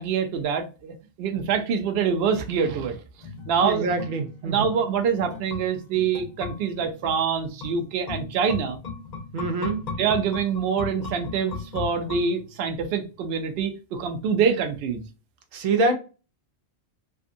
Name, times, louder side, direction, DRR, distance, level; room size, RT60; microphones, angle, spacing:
voice 1, 0.0-3.0 3.5-3.9 4.5-8.8 10.0-15.0, right 6 dB, 65° right, 0.7 m, -25 dB
sound 1, 3.2-12.7 13.0-13.1, left 4 dB, 50° left, 0.5 m, -37 dB
voice 2, 3.6-4.7 9.3-9.8 15.5-15.9, right 3 dB, 90° right, 1.1 m, -25 dB
2.5 x 2.4 x 2.5 m
omnidirectional pair, 1.3 m